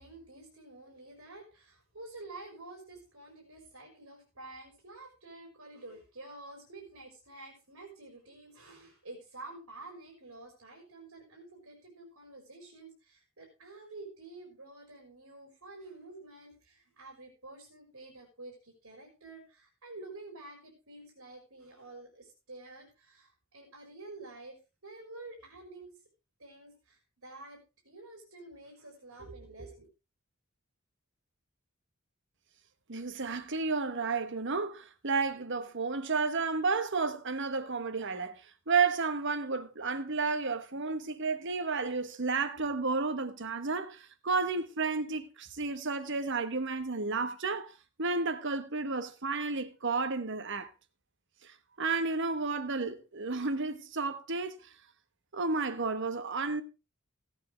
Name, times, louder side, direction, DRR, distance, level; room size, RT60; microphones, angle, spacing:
voice 1, 0.0-25.9 26.4-29.8, right 2 dB, 90° right, 4.5 m, -49 dB
voice 2, 32.9-38.3 38.7-47.7 48.0-50.7 51.8-54.7 55.3-56.6, right 4 dB, 60° right, 1.2 m, -32 dB
16.5 x 9.1 x 3.4 m
head